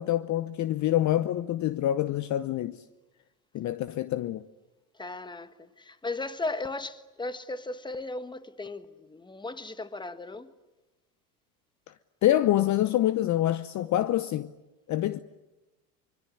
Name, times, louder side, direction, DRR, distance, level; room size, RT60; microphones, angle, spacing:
voice 1, 0.0-2.8 3.5-4.4 12.2-14.5 14.9-15.2, left 13 dB, 40° left, 0.8 m, -26 dB
voice 2, 4.9-10.5, left 2 dB, 10° left, 1.5 m, -36 dB
25.0 x 23.0 x 9.9 m
hypercardioid pair, 80°, 46 cm